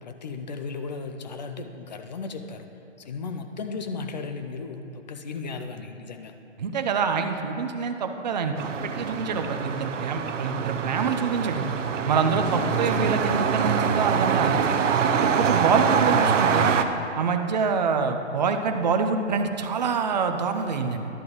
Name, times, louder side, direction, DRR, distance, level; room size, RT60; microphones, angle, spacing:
voice 1, 0.0-2.7 3.0-6.3 12.5-13.1 15.5-16.4, left 4 dB, 35° left, 7 dB, 0.5 m, -36 dB
voice 2, 6.6-11.6 12.1-14.6 15.1-16.8 17.2-21.1, right 5 dB, 35° right, 6 dB, 0.5 m, -26 dB
sound 1, 8.6-16.8, right 6 dB, 80° right, 0.7 m, -24 dB
11.0 x 7.4 x 3.9 m, 2.9 s
hypercardioid pair, 160°, 37 cm